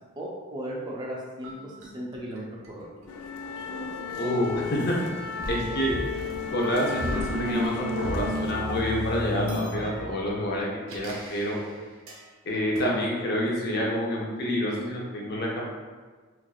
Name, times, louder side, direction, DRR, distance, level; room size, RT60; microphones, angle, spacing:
voice 1, 0.2-2.9, equal, 20° right, -4 dB, 0.4 m, -36 dB
sound 1, 1.4-5.0 5.4-8.4 9.3-12.2 12.8-12.9, equal, 65° right, 0.6 m, -39 dB
sound 2, 3.1-9.6, left 3 dB, 85° left, 0.3 m, -32 dB
voice 2, 4.2-4.9 5.5-5.9 6.5-10.7 10.9-11.6 12.5-15.6, equal, 50° left, -2 dB, 0.6 m, -28 dB
4.3 x 2.3 x 2.4 m, 1.4 s
head